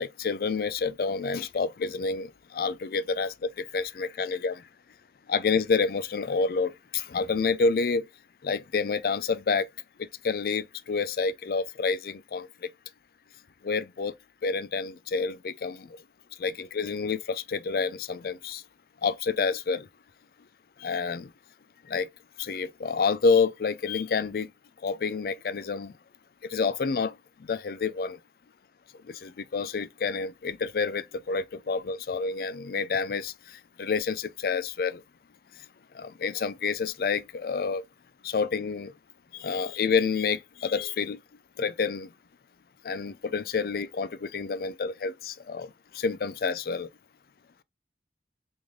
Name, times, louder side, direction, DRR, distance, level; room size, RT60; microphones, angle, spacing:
voice 1, 0.0-4.6 5.3-8.1 8.4-9.7 10.2-12.5 13.6-14.1 14.4-15.9 16.4-18.6 19.0-19.9 20.8-21.3 21.9-22.1 22.4-24.5 24.8-25.9 26.5-27.1 27.5-28.2 29.1-33.3 33.8-35.0 36.0-37.8 38.2-38.9 39.3-41.2 41.6-42.1 42.8-45.7 45.9-46.9, left 5 dB, 55° left, 0.4 m, -28 dB
3.6 x 2.6 x 3.1 m
head